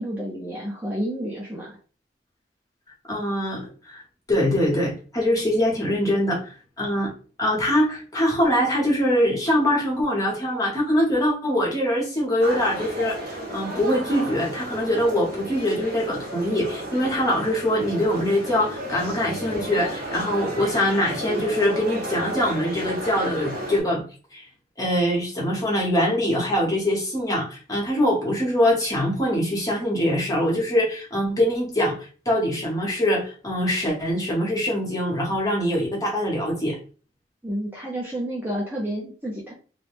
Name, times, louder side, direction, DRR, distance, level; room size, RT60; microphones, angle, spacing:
voice 1, 0.0-1.8 37.4-39.5, equal, 10° right, -4 dB, 0.5 m, -30 dB
voice 2, 3.1-3.6 3.9-4.0 4.3-7.1 7.4-24.0 24.3-24.5 24.8-32.0 32.3-36.8, equal, 20° left, -3 dB, 0.8 m, -23 dB
sound 1, 12.4-23.8, right 1 dB, 60° right, 1.1 m, -33 dB
2.5 x 2.1 x 3.3 m, 0.38 s
head